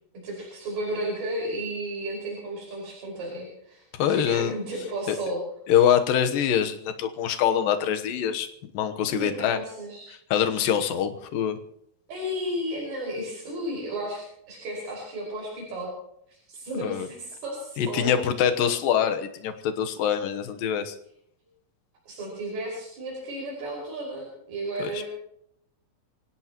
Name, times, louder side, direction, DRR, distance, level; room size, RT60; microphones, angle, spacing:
voice 1, 0.2-5.4 9.1-10.1 12.1-15.9 16.5-18.1 22.1-25.0, right 1 dB, 85° right, -4 dB, 7.3 m, -33 dB
voice 2, 4.0-4.5 5.1-5.2 5.7-8.5 8.7-9.6 10.1-11.6 16.7-17.1 17.8-20.9 24.8-25.0, left 9 dB, 70° left, 7 dB, 2.7 m, -24 dB
25.5 x 17.0 x 3.0 m, 0.73 s
omnidirectional pair, 4.3 m